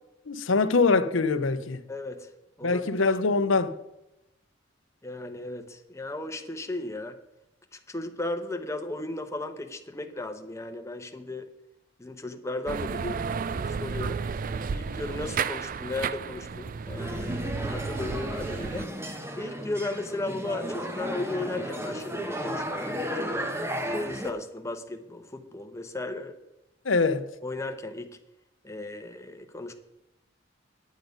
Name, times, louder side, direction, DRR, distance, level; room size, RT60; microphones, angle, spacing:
voice 1, 0.3-1.8 2.6-3.7 26.8-27.3, left 4 dB, 80° left, 0.7 m, -23 dB
voice 2, 1.9-2.3 2.6-2.8 5.0-7.2 7.7-11.5 12.0-14.2 14.7-18.9 19.4-23.0 23.3-23.5 23.9-26.3 27.4-28.2 28.6-29.7, left 2 dB, 15° left, 0.9 m, -35 dB
sound 1, 12.7-18.9, right 5 dB, 45° right, 0.4 m, -32 dB
sound 2, 17.0-24.3, equal, 15° right, 1.0 m, -34 dB
9.3 x 9.0 x 5.2 m
head